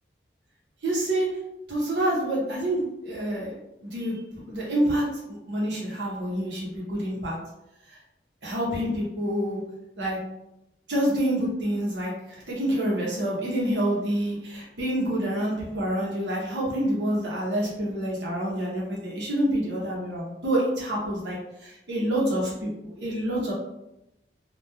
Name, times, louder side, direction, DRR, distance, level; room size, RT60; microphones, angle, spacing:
voice 1, 0.8-1.3 1.7-4.2 4.5-7.4 7.9-8.0 8.4-9.6 10.0-10.2 10.9-23.5, right 1 dB, 80° right, -5 dB, 0.8 m, -27 dB
2.9 x 2.2 x 2.2 m, 0.88 s
head